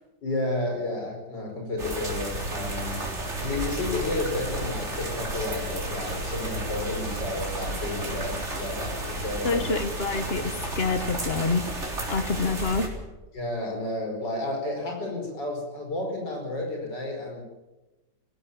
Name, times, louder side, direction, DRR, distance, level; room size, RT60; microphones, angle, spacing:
voice 1, 0.2-3.1 3.4-9.7 13.3-17.4, left 2 dB, 80° left, 1 dB, 5.8 m, -31 dB
sound 1, 1.8-12.9, right 1 dB, 40° right, 4.2 m, -32 dB
voice 2, 9.4-11.6 12.1-12.9, left 3 dB, 35° left, 10 dB, 1.6 m, -27 dB
19.0 x 16.5 x 8.7 m, 1.1 s
omnidirectional pair, 1.9 m